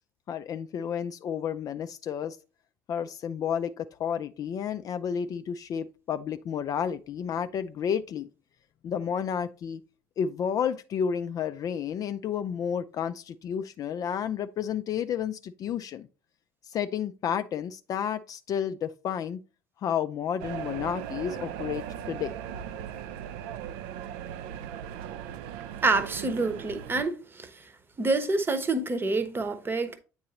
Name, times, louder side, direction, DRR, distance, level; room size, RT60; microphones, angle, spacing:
voice 1, 0.3-2.4 2.9-8.3 8.8-9.8 10.2-16.1 16.7-19.4 19.8-22.3, left 8 dB, 40° left, 0.4 m, -31 dB
sound 1, 20.4-27.0, right 9 dB, 65° right, 0.4 m, -38 dB
voice 2, 25.8-27.5 28.0-30.0, right 3 dB, 25° right, 0.9 m, -27 dB
8.4 x 3.9 x 2.9 m
hypercardioid pair, 65°, 9 cm